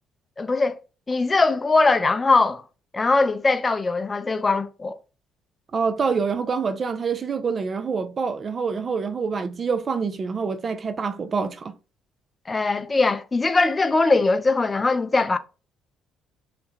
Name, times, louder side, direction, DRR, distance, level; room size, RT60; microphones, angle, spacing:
voice 1, 0.4-0.8 1.1-2.6 2.9-5.0 12.5-15.4, left 3 dB, 30° left, 0.4 m, -21 dB
voice 2, 5.7-11.7, right 5 dB, 45° right, 0.3 m, -26 dB
2.4 x 2.1 x 3.1 m
hypercardioid pair, 50°, 0 cm